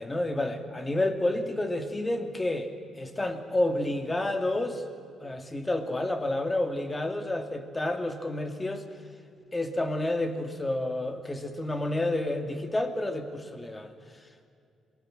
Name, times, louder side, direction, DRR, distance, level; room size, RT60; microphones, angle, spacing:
voice 1, 0.0-4.8 5.2-8.8 9.5-13.9, left 1 dB, 20° left, 7 dB, 2.5 m, -30 dB
26.5 x 19.0 x 7.8 m, 2.4 s
cardioid pair, 90°, 0 cm